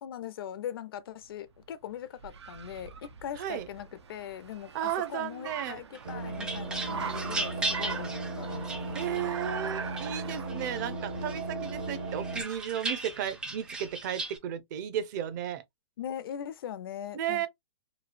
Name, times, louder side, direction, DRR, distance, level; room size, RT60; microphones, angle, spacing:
voice 1, 0.0-9.0 16.0-17.5, left 10 dB, 60° left, 0.5 m, -41 dB
Car, 1.2-14.1, right 6 dB, 85° right, 0.6 m, -43 dB
voice 2, 3.4-3.7 4.7-5.8 8.9-15.6 17.1-17.5, right 10 dB, 45° right, 0.6 m, -34 dB
sound 1, 5.9-9.5 10.0-10.9 11.3-14.4, right 2 dB, 5° right, 0.3 m, -37 dB
sound 2, 6.0-12.4, right 2 dB, 70° right, 1.2 m, -36 dB
3.1 x 2.4 x 2.4 m
hypercardioid pair, 135°, 14 cm